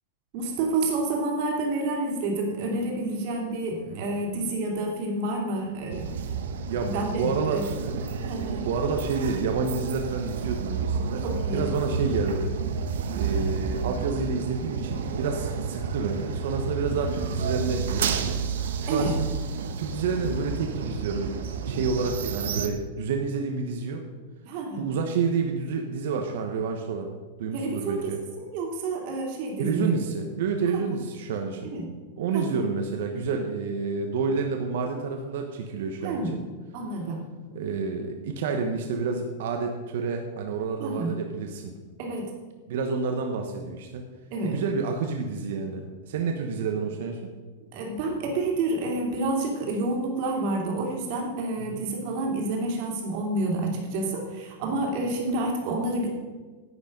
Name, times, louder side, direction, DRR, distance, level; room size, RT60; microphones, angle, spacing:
voice 1, 0.3-6.1 6.8-7.6 8.2-8.6 11.2-11.6 18.9-19.1 24.4-24.9 27.5-29.9 30.7-30.8 31.6-31.8 32.3-32.7 36.0-36.3 36.7-37.2 40.8-41.1 42.0-42.3 44.3-44.6 47.7-56.1, right 2 dB, 45° right, 1 dB, 2.6 m, -29 dB
sound 1, 5.9-22.7, right 5 dB, 85° right, 1.1 m, -31 dB
voice 2, 6.7-8.2 8.6-11.2 11.5-12.5 13.1-18.5 18.8-19.3 19.8-21.3 21.6-24.0 24.8-27.1 27.4-28.2 29.6-31.7 32.2-36.2 37.5-41.7 42.7-44.1 44.4-47.3 51.6-51.8, right 5 dB, 65° right, 4 dB, 1.1 m, -29 dB
11.0 x 8.4 x 5.2 m, 1.4 s
supercardioid pair, 170°, 0 cm